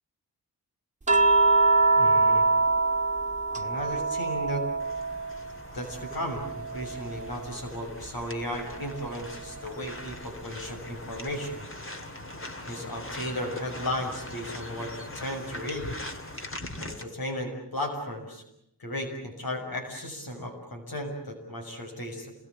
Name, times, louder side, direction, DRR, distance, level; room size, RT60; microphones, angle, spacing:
sound 1, 1.1-5.6 5.9-7.5 9.1-9.2, right 3 dB, 20° right, 1.8 m, -24 dB
voice 1, 2.0-2.5 3.6-4.7 5.7-11.7 12.7-15.9 16.8-18.4 18.8-22.3, left 1 dB, 70° left, 3 dB, 6.8 m, -35 dB
Camera Walking (Gravel), 4.8-17.0, left 1 dB, 35° left, 2.5 m, -41 dB
28.0 x 21.0 x 8.8 m, 0.79 s
wide cardioid pair, 100°, 38 cm